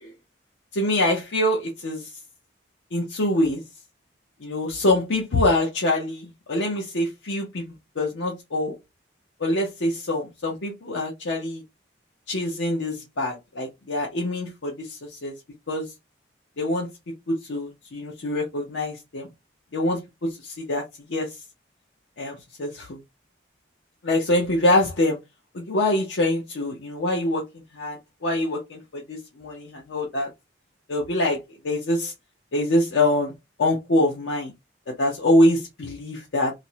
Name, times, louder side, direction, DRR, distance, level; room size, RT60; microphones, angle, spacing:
voice 1, 0.7-2.1 2.9-3.6 4.4-8.7 9.4-11.6 12.3-15.3 15.7-15.9 16.6-16.9 17.3-19.3 19.7-20.8 21.1-21.3 22.2-23.0 24.0-25.2 25.5-27.4 27.7-30.3 30.9-32.1 32.5-33.3 33.6-34.5 35.0-36.5, left 1 dB, 75° left, 0.6 m, -24 dB
2.4 x 2.0 x 2.7 m
head